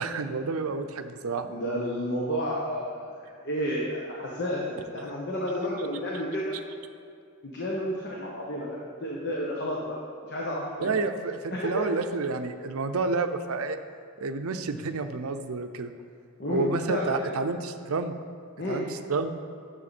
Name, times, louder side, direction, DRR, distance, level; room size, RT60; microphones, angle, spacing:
voice 1, 0.0-1.5 10.8-13.8 14.2-15.9 16.5-18.1 18.7-19.4, right 3 dB, 80° right, 8 dB, 0.6 m, -29 dB
voice 2, 1.5-6.6 7.4-10.0 10.3-10.9 11.5-11.9 16.4-17.3 18.6-18.8, equal, 50° left, -4 dB, 1.2 m, -31 dB
10.5 x 7.4 x 4.2 m, 2.3 s
head